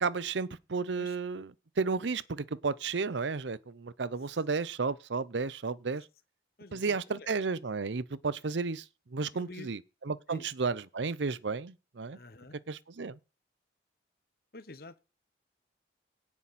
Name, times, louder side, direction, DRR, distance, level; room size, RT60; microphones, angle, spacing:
voice 1, 0.0-1.5 1.8-6.1 6.7-8.8 9.1-9.8 10.1-12.2 12.7-13.2, right 4 dB, 75° right, 0.7 m, -33 dB
voice 2, 6.6-7.3 9.3-9.8 10.3-10.5 12.1-12.6 14.5-15.0, left 2 dB, 55° left, 1.0 m, -48 dB
17.0 x 5.9 x 4.2 m
head